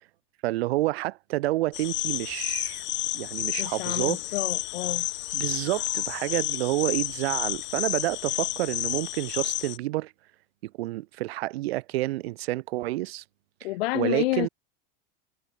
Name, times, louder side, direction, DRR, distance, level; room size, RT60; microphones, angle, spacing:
voice 1, 0.4-2.8 3.1-4.2 5.3-10.1 10.6-13.2 13.9-14.5, right 18 dB, 85° right, 2.4 m, -29 dB
sound 1, 1.7-9.8, left 17 dB, 35° left, 2.1 m, -31 dB
voice 2, 3.6-5.1 13.6-14.5, left 19 dB, 85° left, 1.1 m, -29 dB
supercardioid pair, 155°, 30 cm